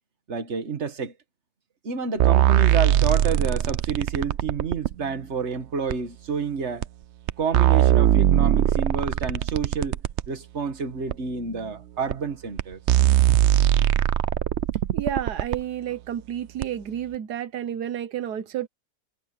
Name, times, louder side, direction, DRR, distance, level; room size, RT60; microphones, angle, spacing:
voice 1, 0.3-1.1 1.8-6.9 7.4-10.0 10.3-12.8, right 5 dB, 45° right, 1.9 m, -29 dB
sound 1, 2.2-4.9 5.9-6.0 6.8-6.9 7.3-10.3 11.1-11.2 12.1-12.2 12.6-12.7 12.9-15.6 16.6-16.7, right 12 dB, 65° right, 0.7 m, -20 dB
voice 2, 14.9-18.7, right 10 dB, 90° right, 1.5 m, -30 dB
omnidirectional pair, 1.6 m